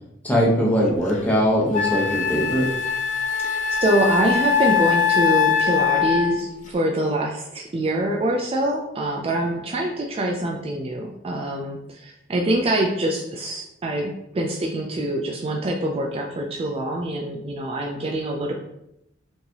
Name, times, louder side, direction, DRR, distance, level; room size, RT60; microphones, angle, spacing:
voice 1, 0.2-2.7, equal, 10° left, -3 dB, 1.0 m, -21 dB
Wind instrument woodwind instrument, 1.1-1.2 1.7-6.4, left 7 dB, 40° left, 0.5 m, -22 dB
voice 2, 3.4-18.6, right 1 dB, 30° right, 1 dB, 0.4 m, -25 dB
4.3 x 3.3 x 2.9 m, 0.82 s
head